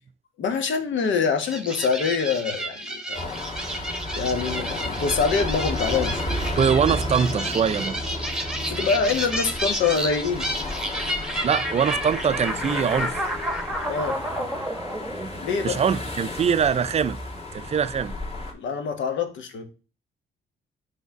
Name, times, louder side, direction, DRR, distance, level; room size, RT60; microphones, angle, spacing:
voice 1, 0.4-3.4 3.8-3.9 4.1-6.2 8.7-10.4 13.9-14.2 15.4-15.8 18.5-19.6, left 5 dB, 70° left, 1.3 m, -25 dB
sound 1, 1.4-16.1, right 1 dB, 5° right, 1.1 m, -31 dB
sound 2, 3.1-18.5, left 1 dB, 30° left, 2.2 m, -32 dB
voice 2, 6.6-8.0 11.4-13.1 15.6-17.2 17.5-18.1, right 7 dB, 35° right, 0.4 m, -23 dB
5.4 x 3.4 x 5.7 m
cardioid pair, 90°, 20 cm